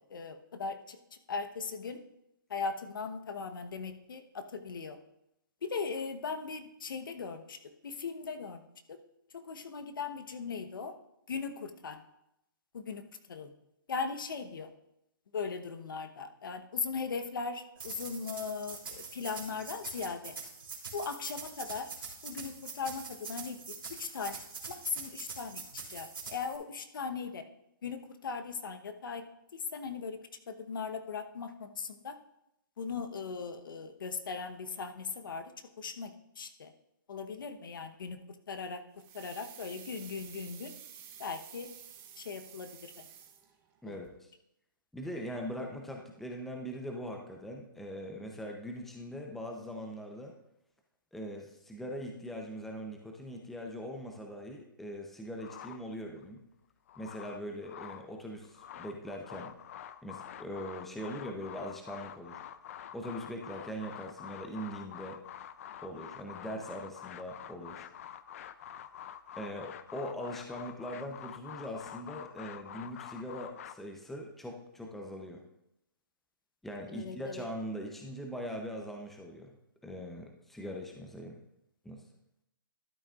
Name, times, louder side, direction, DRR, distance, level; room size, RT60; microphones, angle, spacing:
voice 1, 0.1-1.0 1.3-2.0 2.5-5.0 5.6-7.6 7.8-8.6 8.9-9.0 9.3-10.9 11.3-12.0 12.7-13.0 13.3-13.5 13.9-14.7 15.3-20.3 20.9-21.9 22.2-23.6 23.9-24.4 24.7-27.4 27.8-29.2 29.5-30.2 30.5-32.1 32.8-35.5 35.8-36.7 37.1-38.2 38.5-38.8 39.1-40.7 41.2-41.7 42.2-43.0 43.9-44.0 76.9-77.4, left 5 dB, 65° left, 8 dB, 1.1 m, -38 dB
sound 1, 17.8-26.6, right 4 dB, 90° right, 3.2 m, -44 dB
sound 2, 39.0-43.8 44.0-44.1, right 9 dB, 20° right, 1.0 m, -51 dB
voice 2, 43.8-44.3 44.9-50.3 51.1-56.4 57.0-59.5 60.0-62.4 62.9-65.2 65.8-67.9 69.4-75.4 76.6-79.5 79.8-81.4 81.8-82.0, equal, ahead, 2 dB, 0.7 m, -41 dB
sound 3, 55.4-56.2 56.7-58.1 58.4-73.7, left 10 dB, 40° left, 0.5 m, -47 dB
12.5 x 8.8 x 2.5 m, 0.83 s
hypercardioid pair, 150°, 12 cm